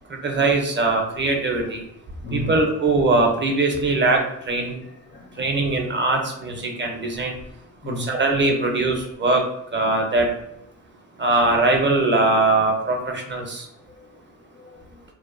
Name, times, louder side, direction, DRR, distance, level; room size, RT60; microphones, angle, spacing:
voice 1, 0.1-1.8 2.3-4.8 5.4-7.4 8.0-9.4 9.7-10.3 11.2-13.7, right 2 dB, 35° right, 0.5 m, -21 dB
voice 2, 2.2-2.6 4.8-5.5 7.8-8.2 13.9-14.1 14.5-15.0, left 1 dB, 35° left, 0.5 m, -35 dB
2.7 x 2.1 x 2.4 m
cardioid pair, 85°, 33 cm